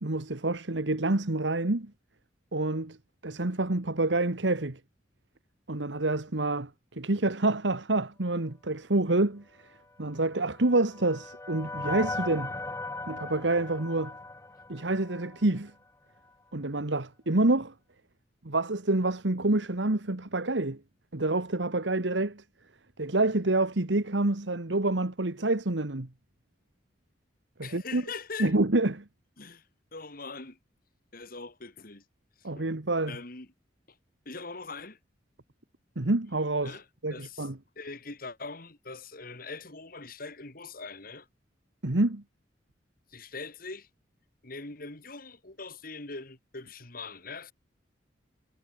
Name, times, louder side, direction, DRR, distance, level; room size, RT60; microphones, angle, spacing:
voice 1, 0.0-1.9 2.5-3.0 3.2-4.8 5.7-9.4 10.0-12.5 13.1-14.1 14.7-15.7 16.5-17.7 18.4-20.8 21.1-22.4 23.0-26.1 27.6-28.0 28.4-29.0 32.4-33.2 35.9-36.8 37.0-37.6 41.8-42.2, right 2 dB, 80° right, 1.6 m, -27 dB
sound 1, 10.2-15.5, left 2 dB, 15° left, 1.0 m, -38 dB
voice 2, 27.6-28.5 29.4-29.6 29.9-30.6 31.1-32.0 32.4-32.7 33.1-33.5 34.2-35.0 36.6-37.5 37.7-41.3 43.1-43.9 44.4-47.5, left 4 dB, 50° left, 3.2 m, -42 dB
head